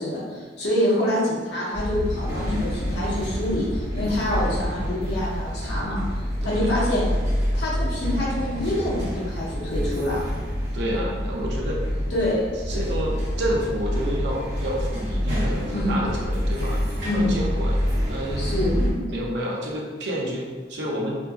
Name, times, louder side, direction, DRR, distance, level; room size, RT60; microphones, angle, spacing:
voice 1, 0.0-6.0 6.4-7.1 7.5-10.2 12.1-12.5 15.7-16.0 17.0-17.4 18.4-19.0, left 1 dB, 65° left, -6 dB, 0.8 m, -26 dB
sound 1, 1.7-18.9, equal, 40° right, 1.1 m, -27 dB
voice 2, 6.4-6.7 10.7-11.8 12.7-17.8 18.1-18.6 19.1-21.2, equal, 65° right, -2 dB, 0.5 m, -29 dB
2.7 x 2.6 x 2.3 m, 1.5 s
head